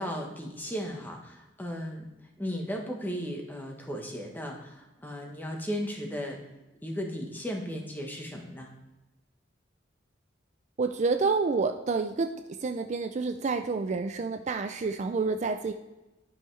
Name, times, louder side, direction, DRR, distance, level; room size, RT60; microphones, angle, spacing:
voice 1, 0.0-2.1 2.4-6.4 6.8-8.7, equal, 10° left, 1 dB, 1.1 m, -35 dB
voice 2, 10.8-12.3 12.6-15.7, right 4 dB, 40° right, 6 dB, 0.4 m, -28 dB
11.5 x 5.5 x 3.2 m, 1.0 s
head